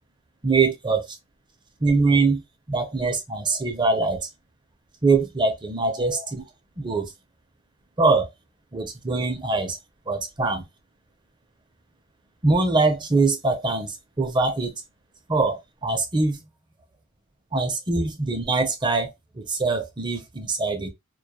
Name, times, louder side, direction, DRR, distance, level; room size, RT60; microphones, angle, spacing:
voice 1, 0.4-1.1 1.8-2.4 2.7-4.3 5.0-6.4 6.8-7.1 8.0-8.3 8.7-9.8 10.1-10.6 12.4-14.7 15.3-16.4 17.5-20.9, right 3 dB, 25° right, 0.5 m, -23 dB
2.2 x 2.1 x 2.8 m
head